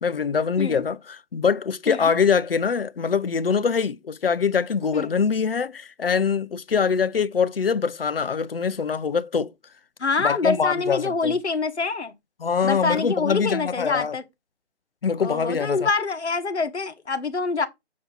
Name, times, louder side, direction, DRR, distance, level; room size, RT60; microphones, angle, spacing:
voice 1, 0.0-9.5 10.2-11.4 12.4-14.1 15.0-15.9, left 6 dB, 55° left, 0.6 m, -23 dB
voice 2, 10.0-12.1 12.6-14.2 15.2-17.7, left 4 dB, 70° left, 1.4 m, -25 dB
7.2 x 4.4 x 4.0 m
figure-of-eight pair, 155°, 35 cm